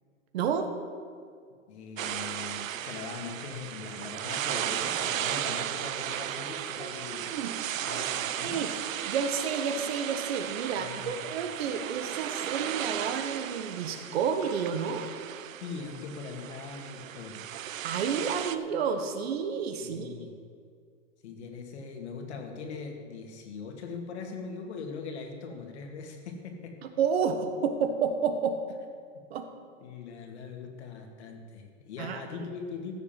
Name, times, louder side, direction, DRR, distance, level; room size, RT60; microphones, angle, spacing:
voice 1, 0.3-0.7 6.8-6.9 7.2-7.5 8.4-8.7 9.0-15.1 17.8-20.1 26.8-28.6 29.3-29.4 32.0-32.5, right 6 dB, 50° right, 7 dB, 1.5 m, -30 dB
voice 2, 1.7-7.3 7.8-8.6 10.8-11.2 15.6-17.4 19.8-20.4 21.2-26.8 29.1-29.2 29.8-32.9, left 5 dB, 55° left, 3 dB, 2.4 m, -41 dB
sound 1, 2.0-18.6, right 11 dB, 90° right, 0.7 m, -35 dB
14.5 x 7.0 x 7.6 m, 2.1 s
hypercardioid pair, 150°, 39 cm